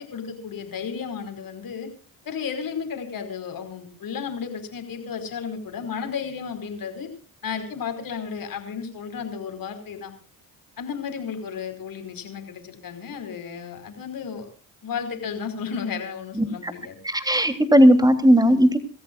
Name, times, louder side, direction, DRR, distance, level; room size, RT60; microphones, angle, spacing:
voice 1, 0.0-1.9 2.2-7.1 7.4-10.1 10.8-14.5 14.8-17.0 17.8-17.9, left 6 dB, 55° left, 6 dB, 5.0 m, -33 dB
voice 2, 16.3-16.7 17.0-18.8, equal, 10° right, 9 dB, 3.3 m, -17 dB
27.0 x 14.0 x 2.5 m, 0.41 s
supercardioid pair, 60°, 40 cm